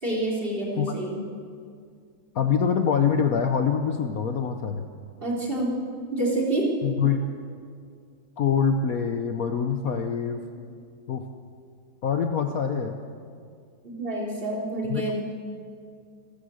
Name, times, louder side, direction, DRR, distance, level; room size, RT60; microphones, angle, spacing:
voice 1, 0.0-1.2 5.2-5.7 6.1-6.7 13.8-15.2, right 1 dB, 30° right, -2 dB, 4.0 m, -27 dB
voice 2, 2.3-4.9 6.8-7.2 8.4-10.5 11.1-11.2 12.0-13.0 14.9-15.1, left 7 dB, 55° left, 6 dB, 1.2 m, -25 dB
27.0 x 15.5 x 6.4 m, 2.2 s
omnidirectional pair, 2.0 m